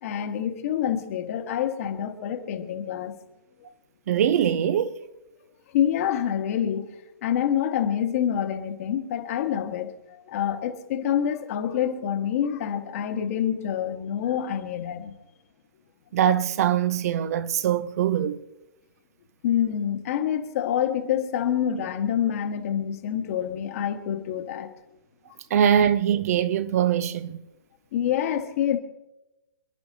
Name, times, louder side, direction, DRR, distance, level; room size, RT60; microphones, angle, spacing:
voice 1, 0.0-3.1 5.7-6.9 7.2-15.1 19.4-24.7 27.9-28.8, left 9 dB, 45° left, 1.8 m, -27 dB
voice 2, 4.1-5.0 16.1-18.4 25.5-27.4, right 9 dB, 45° right, 0.9 m, -22 dB
28.0 x 11.5 x 2.9 m
figure-of-eight pair, 125°, 11 cm